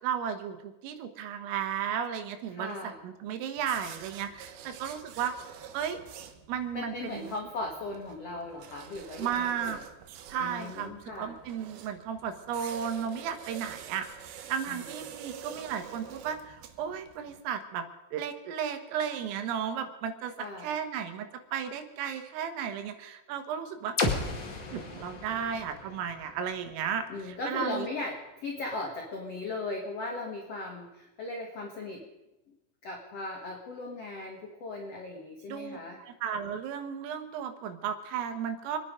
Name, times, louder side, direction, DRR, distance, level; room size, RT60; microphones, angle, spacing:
voice 1, 0.0-5.4 5.7-6.0 6.5-7.3 9.2-9.8 10.3-20.3 20.6-24.3 24.7-27.9 35.5-35.8 36.1-38.8, right 8 dB, 90° right, 8 dB, 4.0 m, -34 dB
voice 2, 2.5-3.0 6.7-9.8 10.3-11.3 14.7-14.9 20.4-20.7 27.1-32.0 32.8-36.0, left 2 dB, 60° left, 0 dB, 1.6 m, -38 dB
sound 1, 3.6-17.4, right 8 dB, 75° right, 2.4 m, -47 dB
sound 2, 24.0-27.8, left 3 dB, 85° left, 1.0 m, -35 dB
27.0 x 9.9 x 5.2 m, 0.98 s
omnidirectional pair, 5.7 m